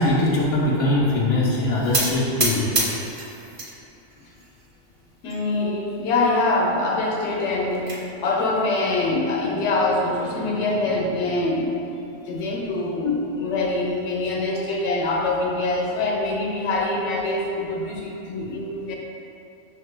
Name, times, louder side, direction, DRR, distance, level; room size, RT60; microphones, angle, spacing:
voice 1, 0.0-2.7, left 2 dB, 55° left, -6 dB, 0.3 m, -21 dB
sound 1, 1.9-3.7 4.1-4.7 5.3-5.4 5.7-5.8 6.1-6.2 7.4-8.0, right 2 dB, 45° right, 0.4 m, -26 dB
voice 2, 5.2-11.7 12.3-19.0, left 2 dB, 75° left, -1 dB, 0.9 m, -24 dB
5.7 x 2.2 x 3.2 m, 2.8 s
omnidirectional pair, 1.2 m